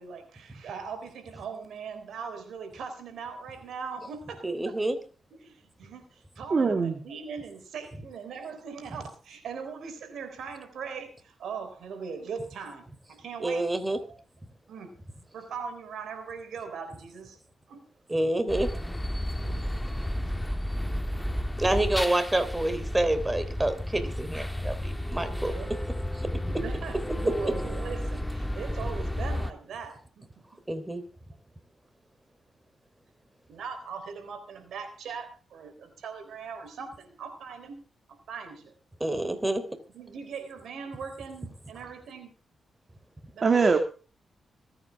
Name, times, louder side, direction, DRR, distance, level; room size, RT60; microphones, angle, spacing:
voice 1, 0.0-4.8 5.4-12.8 13.1-14.2 14.7-14.9 15.3-17.4 17.7-17.9 18.7-18.8 19.4-19.6 20.3-20.4 25.2-25.7 26.3-30.4 33.5-38.7 39.5-39.7 39.9-42.3 43.3-43.7, right 5 dB, 80° right, 9 dB, 3.8 m, -40 dB
voice 2, 4.4-5.0 13.4-14.0 18.1-18.7 21.6-25.5 30.7-31.0 39.0-39.6, right 1 dB, 20° right, 10 dB, 3.4 m, -27 dB
voice 3, 6.5-7.0 43.4-43.8, right 4 dB, 50° right, 6 dB, 2.0 m, -22 dB
sound 1, 18.5-29.5, equal, 10° left, 1.6 m, -32 dB
25.5 x 9.3 x 3.6 m, 0.36 s
cardioid pair, 55°, 0 cm